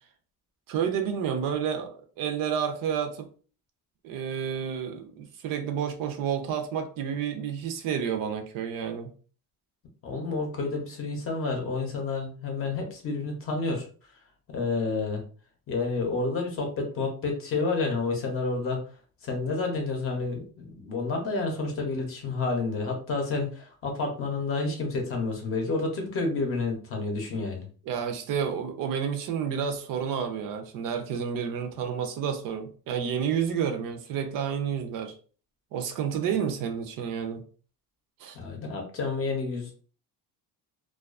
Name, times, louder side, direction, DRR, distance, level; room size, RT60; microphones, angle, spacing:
voice 1, 0.7-1.9 2.2-3.3 4.0-9.1 27.9-35.2 35.7-37.4 38.2-38.4, right 7 dB, 60° right, 0.5 m, -30 dB
voice 2, 10.0-13.9 14.5-15.2 15.7-18.8 19.2-27.7 38.3-39.7, left 3 dB, 35° left, 0.6 m, -29 dB
2.3 x 2.3 x 2.3 m
cardioid pair, 170°, 38 cm